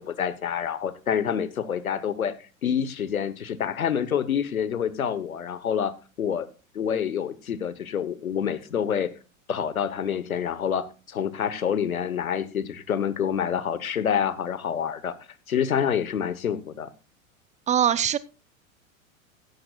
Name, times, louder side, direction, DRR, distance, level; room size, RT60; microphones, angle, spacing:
voice 1, 0.0-2.3 2.6-6.5 6.7-9.1 9.5-15.2 15.5-16.9, left 8 dB, 85° left, 16 dB, 1.2 m, -27 dB
voice 2, 17.7-18.2, right 9 dB, 15° right, 18 dB, 0.6 m, -21 dB
16.0 x 11.5 x 2.4 m, 0.32 s
hypercardioid pair, 95°, 41 cm